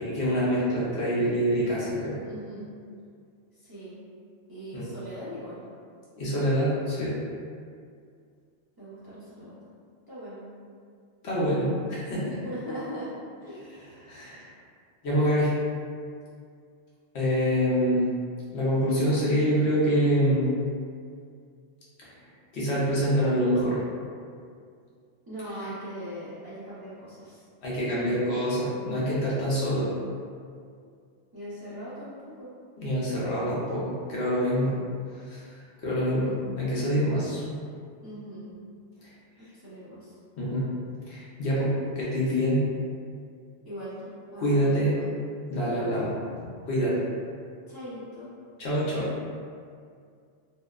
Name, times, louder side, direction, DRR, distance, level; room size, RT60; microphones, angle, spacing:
voice 1, 0.0-2.1 4.7-4.8 6.2-7.2 11.2-12.4 14.0-14.4 15.0-15.5 17.1-18.0 18.5-20.5 22.5-23.8 27.6-29.9 32.8-34.7 35.3-35.4 35.8-37.4 40.4-40.7 41.1-42.7 44.4-44.9 45.5-46.1 46.7-47.0 48.6-49.1, equal, 70° left, -8 dB, 0.9 m, -25 dB
voice 2, 2.2-2.7 3.5-4.0 4.5-5.6 8.8-9.6 10.1-10.4 12.4-13.1 13.4-13.8 25.3-27.4 31.3-32.5 38.0-38.5 39.4-40.2 43.6-45.1 47.7-48.3, equal, 25° right, -13 dB, 0.5 m, -40 dB
2.7 x 2.0 x 2.2 m, 2.2 s
omnidirectional pair, 1.2 m